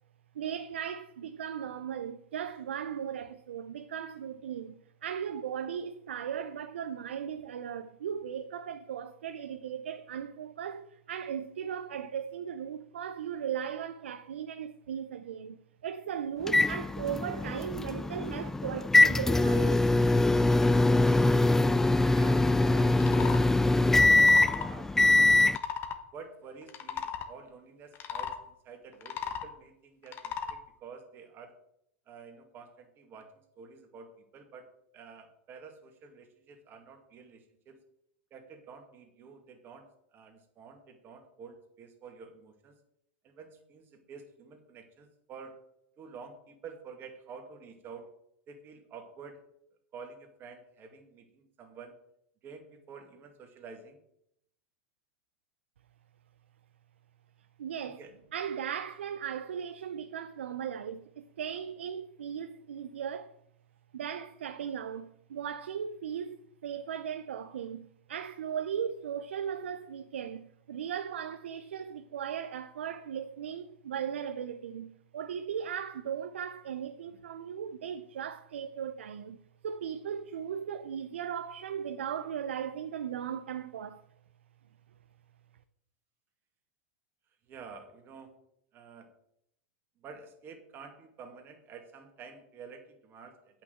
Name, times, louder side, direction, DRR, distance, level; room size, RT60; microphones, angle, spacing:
voice 1, 0.3-4.8 5.0-15.6 15.8-19.8 57.6-58.0 58.3-63.3 63.9-79.4 79.6-84.0, right 8 dB, 80° right, 0.6 m, -37 dB
sound 1, 16.5-25.6, left 2 dB, 5° left, 0.3 m, -23 dB
voice 2, 22.1-23.5 24.2-25.0 26.1-31.6 32.1-37.8 38.3-42.7 43.2-45.6 46.0-48.1 48.5-49.4 49.9-52.0 52.4-54.0 57.8-58.1 87.5-88.3 88.7-89.1 90.0-93.6, right 5 dB, 35° right, 2.2 m, -49 dB
sound 2, 22.9-23.4 24.0-24.7 25.4-26.0 26.6-27.3 27.9-28.4 28.9-29.5 30.1-30.6, left 8 dB, 35° left, 1.3 m, -36 dB
8.4 x 6.0 x 7.8 m
hypercardioid pair, 105°, 6 cm